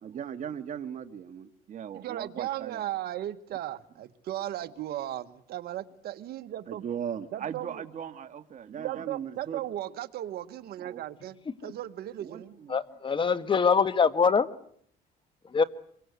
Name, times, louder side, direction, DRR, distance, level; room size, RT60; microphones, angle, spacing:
voice 1, 0.0-2.8 6.7-9.6 10.8-11.0 12.2-12.8, right 8 dB, 50° right, 7 dB, 1.8 m, -38 dB
voice 2, 1.9-6.8 7.3-7.8 8.8-12.6, right 13 dB, 70° right, 9 dB, 1.5 m, -36 dB
voice 3, 12.7-14.5 15.5-15.6, left 5 dB, 30° left, 12 dB, 1.6 m, -23 dB
26.0 x 23.0 x 8.2 m, 0.64 s
cardioid pair, 110°, 17 cm